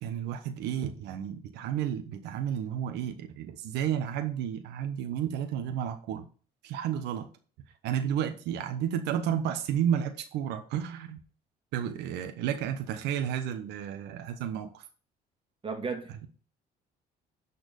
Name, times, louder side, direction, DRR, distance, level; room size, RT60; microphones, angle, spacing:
voice 1, 0.0-6.3 6.6-7.3 7.8-11.2 11.7-14.8, right 9 dB, 90° right, 1.1 m, -32 dB
voice 2, 15.6-16.3, right 5 dB, 30° right, 2.0 m, -35 dB
10.5 x 4.4 x 5.3 m
cardioid pair, 110°, 17 cm